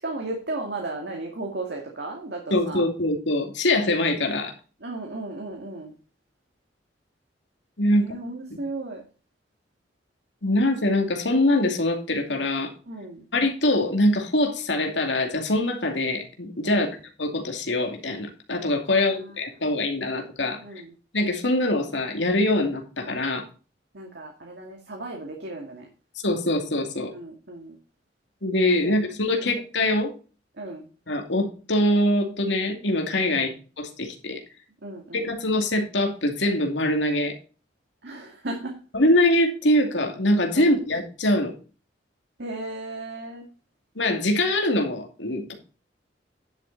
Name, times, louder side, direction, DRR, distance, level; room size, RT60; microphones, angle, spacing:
voice 1, 0.0-2.9 4.8-5.9 7.9-9.0 12.9-13.3 16.6-16.9 18.9-19.7 20.6-20.9 23.9-25.9 27.1-27.8 28.8-29.6 30.6-30.9 33.3-33.5 34.8-35.3 38.0-38.8 40.5-40.8 42.4-43.5, right 2 dB, 65° right, 1 dB, 2.3 m, -35 dB
voice 2, 2.5-4.5 7.8-8.1 10.4-12.7 13.3-16.9 17.2-20.6 21.1-23.4 26.2-27.1 28.4-30.1 31.1-33.5 33.8-34.4 35.1-37.3 38.9-41.5 44.0-45.5, left 1 dB, 80° left, 3 dB, 2.5 m, -23 dB
10.5 x 7.9 x 4.0 m, 0.35 s
head